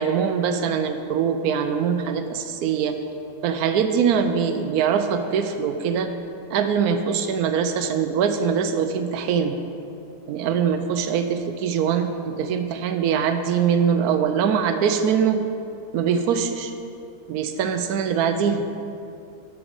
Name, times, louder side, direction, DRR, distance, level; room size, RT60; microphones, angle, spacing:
voice 1, 0.0-3.0 3.4-6.1 6.5-9.6 10.3-15.4 15.9-16.7 17.3-18.6, right 7 dB, 70° right, 7 dB, 1.0 m, -23 dB
6.0 x 5.2 x 6.4 m, 2.6 s
omnidirectional pair, 1.8 m